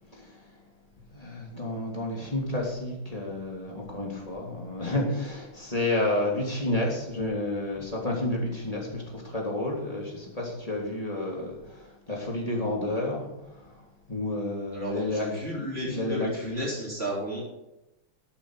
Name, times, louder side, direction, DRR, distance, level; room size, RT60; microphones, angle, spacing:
voice 1, 0.1-0.4 1.1-13.3 13.5-13.8 14.1-15.3 15.5-16.7, left 1 dB, 15° left, -2 dB, 3.1 m, -30 dB
voice 2, 14.7-17.4, right 1 dB, 30° right, -4 dB, 4.1 m, -33 dB
13.5 x 9.0 x 5.1 m, 0.92 s
omnidirectional pair, 2.3 m